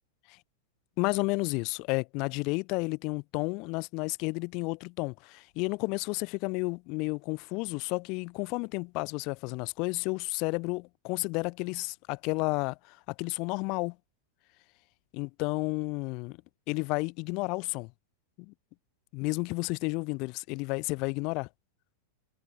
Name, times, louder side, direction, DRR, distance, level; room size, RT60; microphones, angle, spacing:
voice 1, 1.0-14.0 15.1-16.4 16.7-17.9 18.4-18.5 19.1-21.5, left 28 dB, 45° left, 1.2 m, -32 dB
figure-of-eight pair, 95°, 0 cm